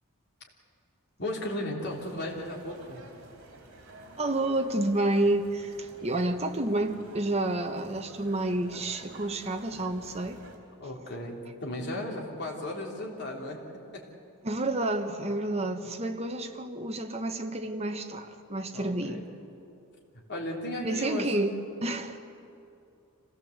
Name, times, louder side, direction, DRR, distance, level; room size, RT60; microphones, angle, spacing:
voice 1, 1.2-3.0 10.8-13.6 13.9-14.1 18.7-19.3 20.1-21.5, left 1 dB, 55° left, -1 dB, 3.6 m, -35 dB
sound 1, 1.8-10.6, right 2 dB, 70° right, 3.7 m, -51 dB
voice 2, 4.2-10.4 14.4-19.3 20.8-22.2, right 2 dB, 30° right, 5 dB, 1.3 m, -30 dB
26.0 x 17.5 x 8.1 m, 2.7 s
head